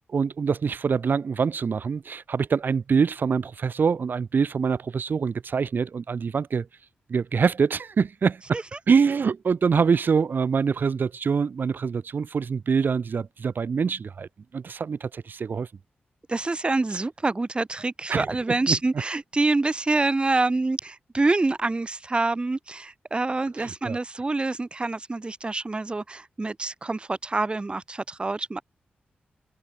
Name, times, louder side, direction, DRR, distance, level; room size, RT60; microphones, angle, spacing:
voice 1, 0.1-6.7 7.1-8.6 8.9-15.7 18.1-18.3 18.7-18.8 23.6-24.0, right 5 dB, 60° right, 1.4 m, -25 dB
voice 2, 16.3-28.6, right 3 dB, 30° right, 1.2 m, -26 dB
cardioid pair, 75°, 4 cm